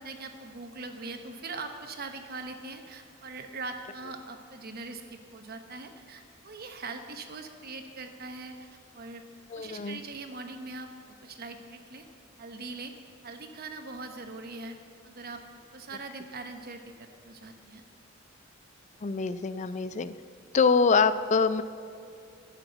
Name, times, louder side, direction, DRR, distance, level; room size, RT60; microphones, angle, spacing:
voice 1, 0.0-8.7 8.9-9.2 9.5-10.9 11.2-12.0 12.4-12.9 13.2-14.8 15.0-15.4 15.7-16.8 17.2-17.8, right 3 dB, 50° right, 6 dB, 1.0 m, -41 dB
voice 2, 9.5-10.0 19.0-20.1 20.5-21.6, left 5 dB, 35° left, 14 dB, 0.4 m, -25 dB
11.5 x 6.9 x 8.0 m, 2.6 s
head